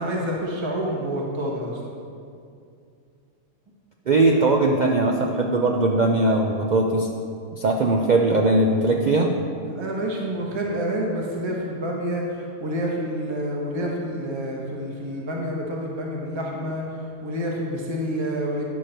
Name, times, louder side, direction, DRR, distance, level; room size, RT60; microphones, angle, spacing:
voice 1, 0.0-1.8 4.3-4.4 9.6-16.8 17.2-18.6, equal, 20° right, -2 dB, 1.0 m, -28 dB
voice 2, 4.1-7.1 7.5-9.3, right 2 dB, 70° right, 1 dB, 0.4 m, -20 dB
9.7 x 6.6 x 4.4 m, 2.4 s
omnidirectional pair, 1.5 m